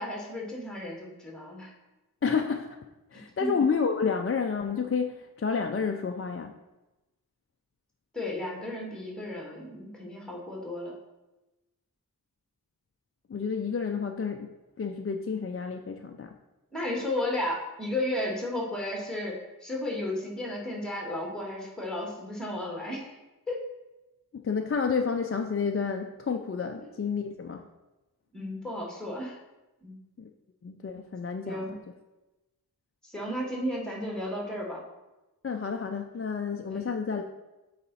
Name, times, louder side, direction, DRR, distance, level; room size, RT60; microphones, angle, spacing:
voice 1, 0.0-1.7 3.4-3.5 8.1-10.9 16.7-23.2 23.5-23.6 28.3-29.4 29.8-30.0 31.4-31.7 33.0-34.8 36.7-36.9, left 1 dB, ahead, -2 dB, 2.0 m, -33 dB
voice 2, 2.2-2.8 3.1-6.6 13.3-16.3 24.3-27.7 30.2-30.3 30.6-31.8 35.4-37.2, left 5 dB, 40° left, 4 dB, 0.4 m, -30 dB
8.4 x 4.1 x 4.1 m, 1.0 s
wide cardioid pair, 75°, 37 cm